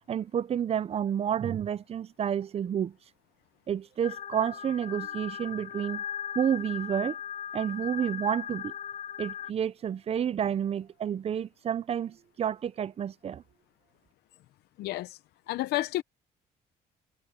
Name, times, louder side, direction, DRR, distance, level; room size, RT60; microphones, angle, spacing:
voice 1, 0.1-2.9 3.7-6.0 6.3-7.2 7.5-8.7 9.2-13.4, right 9 dB, 35° right, 0.6 m, -30 dB
sound 1, 4.0-9.5, left 9 dB, 50° left, 1.7 m, -38 dB
voice 2, 14.8-15.2 15.5-16.0, left 16 dB, 75° left, 0.7 m, -30 dB
cardioid pair, 110°, 17 cm